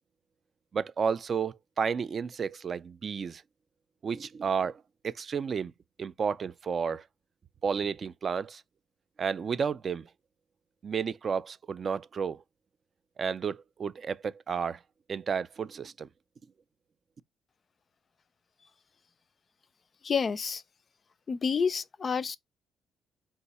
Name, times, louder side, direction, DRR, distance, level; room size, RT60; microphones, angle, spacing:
voice 1, 0.7-3.4 4.0-5.7 6.0-7.0 7.6-8.6 9.2-10.1 10.8-12.4 13.2-14.8 15.1-16.1, right 6 dB, 45° right, 0.3 m, -32 dB
voice 2, 20.0-20.6 21.3-22.4, left 6 dB, 40° left, 0.3 m, -29 dB
4.6 x 2.0 x 4.0 m
cardioid pair, 90°, 0 cm